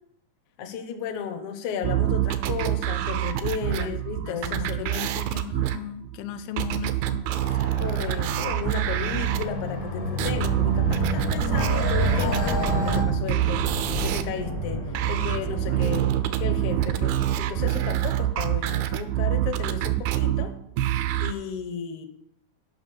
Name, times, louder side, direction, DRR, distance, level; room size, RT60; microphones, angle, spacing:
voice 1, 0.6-5.2 7.8-16.1 16.4-20.6 21.2-22.1, left 7 dB, 65° left, 2.1 m, -34 dB
sound 1, 1.8-9.5 10.2-14.2 15.0-21.3, right 13 dB, 85° right, 2.5 m, -26 dB
voice 2, 3.7-4.0 4.2-7.7 15.5-16.0, left 10 dB, 90° left, 2.5 m, -38 dB
sound 2, 7.3-13.0, left 1 dB, 50° left, 0.9 m, -29 dB
sound 3, 10.3-18.0, right 1 dB, 20° left, 0.7 m, -34 dB
8.9 x 5.9 x 7.5 m
omnidirectional pair, 4.2 m